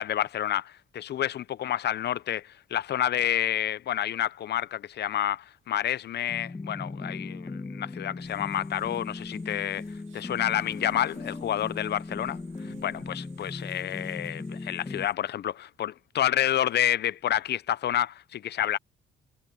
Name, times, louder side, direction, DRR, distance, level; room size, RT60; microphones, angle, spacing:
voice 1, 0.0-9.8 10.1-12.4 12.7-18.8, left 11 dB, 55° left, 0.7 m, -29 dB
sound 1, 6.3-15.1, left 3 dB, 20° left, 1.4 m, -38 dB
sound 2, 8.2-15.1, right 12 dB, 80° right, 2.2 m, -57 dB
cardioid pair, 90°, 20 cm